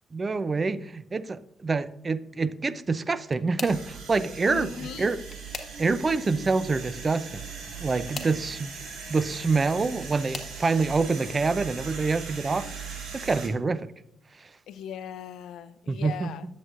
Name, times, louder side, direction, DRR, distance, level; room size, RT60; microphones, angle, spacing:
voice 1, 0.1-4.7 5.0-5.2 5.8-7.4 7.8-8.7 9.1-12.7 13.1-13.9 15.9-16.3, right 4 dB, 30° right, 0.5 m, -26 dB
sound 1, 2.9-3.9 4.9-6.1 7.7-8.4 9.5-10.6 11.3-11.7 12.1-12.2 13.6-13.7, left 4 dB, 35° left, 1.4 m, -42 dB
sound 2, 3.7-13.5, right 5 dB, 65° right, 3.0 m, -39 dB
voice 2, 4.5-5.1 14.7-16.5, left 9 dB, 75° left, 0.5 m, -38 dB
11.0 x 7.6 x 2.5 m
cardioid pair, 85°, 0 cm